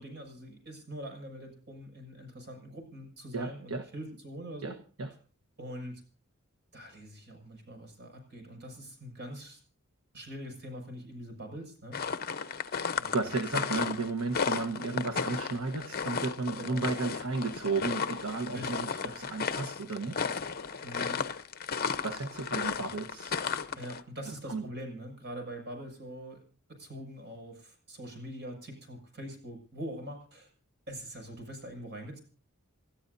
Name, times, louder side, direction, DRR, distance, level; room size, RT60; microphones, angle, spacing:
voice 1, 0.0-4.8 5.6-6.0 6.7-9.6 10.1-12.0 13.0-13.2 16.6-16.9 18.4-19.1 20.8-21.2 23.8-26.4 26.7-30.5 30.9-32.2, equal, 50° right, 4 dB, 6.7 m, -43 dB
voice 2, 3.3-3.9 4.6-5.1 12.4-20.3 20.8-20.9 22.0-23.4 24.5-24.6, right 3 dB, 65° right, 7 dB, 1.3 m, -34 dB
sound 1, 11.9-24.0, left 6 dB, 45° left, 0.9 m, -34 dB
29.5 x 13.0 x 2.7 m, 0.41 s
head